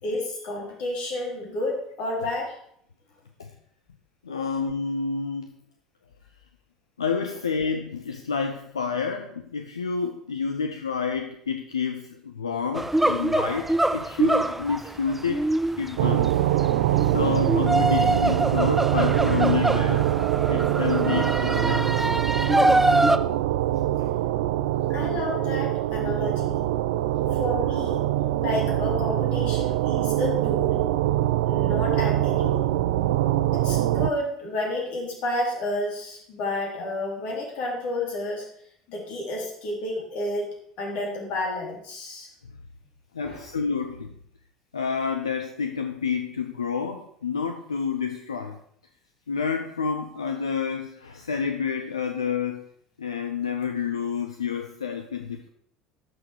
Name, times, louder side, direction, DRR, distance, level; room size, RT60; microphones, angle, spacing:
voice 1, 0.0-2.6 4.4-4.5 24.9-26.6 27.3-28.0 28.4-30.8 31.4-32.6 33.5-38.4 38.9-40.5 40.8-42.3 43.2-43.4, left 1 dB, 55° left, -1 dB, 3.9 m, -30 dB
voice 2, 4.2-5.5 7.0-15.5 15.8-16.5 17.0-20.1 20.5-22.1 43.1-44.1 44.7-48.6 49.3-52.7 53.0-55.5, left 6 dB, 85° left, 5 dB, 0.6 m, -29 dB
sound 1, 12.7-23.2, right 1 dB, 5° right, 0.6 m, -24 dB
sound 2, 16.0-34.1, right 14 dB, 70° right, 0.4 m, -24 dB
14.0 x 6.1 x 4.8 m, 0.67 s
figure-of-eight pair, 65°, 3 cm